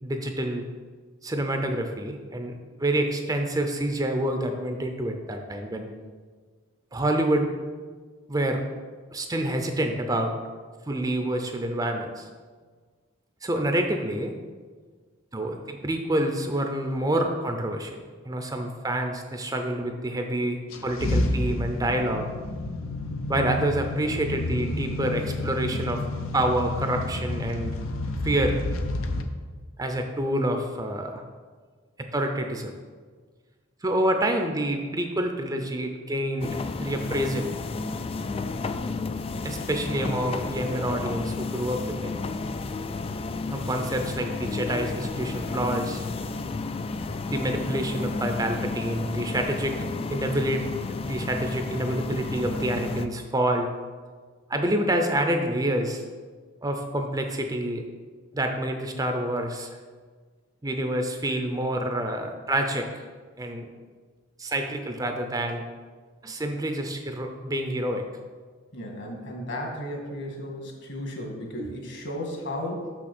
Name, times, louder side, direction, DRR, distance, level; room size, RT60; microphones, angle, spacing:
voice 1, 0.0-0.7 1.2-5.9 6.9-7.5 8.3-8.6 9.1-10.3 10.9-12.3 13.4-14.3 15.3-18.0 18.3-22.3 23.3-26.0 26.3-27.7 28.2-28.6 29.8-31.2 32.0-32.7 33.8-37.5 39.4-42.1 43.5-46.0 47.3-49.8 50.1-53.7 54.5-56.0 56.6-57.8 58.3-59.8 60.6-63.0 63.4-63.7 64.4-65.6 66.2-68.1 71.6-71.7, right 1 dB, 20° right, 4 dB, 0.6 m, -27 dB
sound 1, 20.7-29.2, left 2 dB, 80° left, 0.7 m, -30 dB
sound 2, 36.4-53.1, left 3 dB, 30° left, 0.3 m, -32 dB
voice 2, 68.7-72.9, left 1 dB, 60° left, 0 dB, 1.8 m, -34 dB
6.3 x 6.2 x 6.1 m, 1.5 s
head